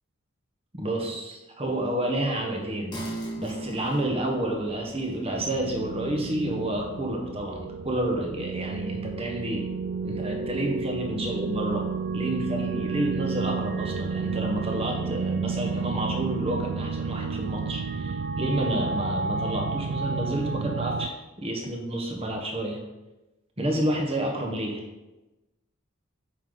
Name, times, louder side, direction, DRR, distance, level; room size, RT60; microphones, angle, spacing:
voice 1, 0.8-3.0 3.4-9.7 10.0-11.9 12.1-22.8 23.6-24.8, right 1 dB, 25° right, 1 dB, 1.3 m, -29 dB
sound 1, 2.9-9.9 10.3-10.4, right 2 dB, 20° left, 1.6 m, -42 dB
sound 2, 5.3-21.1, right 5 dB, 45° right, 0.3 m, -31 dB
8.4 x 5.8 x 3.9 m, 1.0 s
head